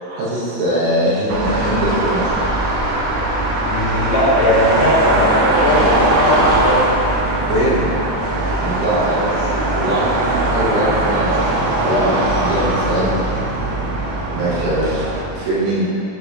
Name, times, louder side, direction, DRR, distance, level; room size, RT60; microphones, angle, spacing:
voice 1, 0.0-2.4 7.5-7.9 8.6-11.5 11.8-13.1 14.3-15.0 15.3-15.8, right 1 dB, 70° right, -9 dB, 2.5 m, -21 dB
sound 1, 1.3-15.2, right 2 dB, 90° right, 1.5 m, -19 dB
voice 2, 3.7-6.9 11.8-12.3 12.6-13.1, left 1 dB, 70° left, -6 dB, 2.6 m, -19 dB
7.8 x 3.1 x 4.8 m, 2.7 s
omnidirectional pair, 4.0 m